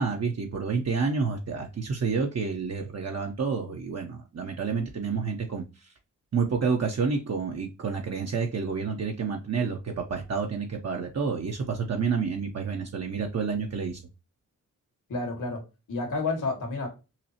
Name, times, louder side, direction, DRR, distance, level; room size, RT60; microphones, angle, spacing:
voice 1, 0.0-5.6 6.3-14.0, right 5 dB, 50° right, 0.8 m, -29 dB
voice 2, 15.1-15.6 15.9-16.9, left 3 dB, 70° left, 1.9 m, -30 dB
5.8 x 2.0 x 2.8 m
wide cardioid pair, 90°, 32 cm